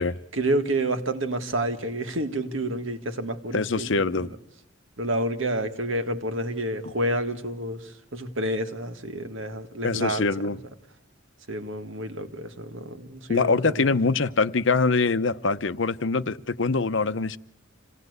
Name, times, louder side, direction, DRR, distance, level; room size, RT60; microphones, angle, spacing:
voice 1, 0.3-4.3 5.0-10.3 11.5-14.0, right 1 dB, 85° right, 1.9 m, -29 dB
voice 2, 3.5-4.3 9.8-10.6 13.3-17.4, left 4 dB, 70° left, 0.8 m, -24 dB
27.0 x 18.0 x 8.1 m
head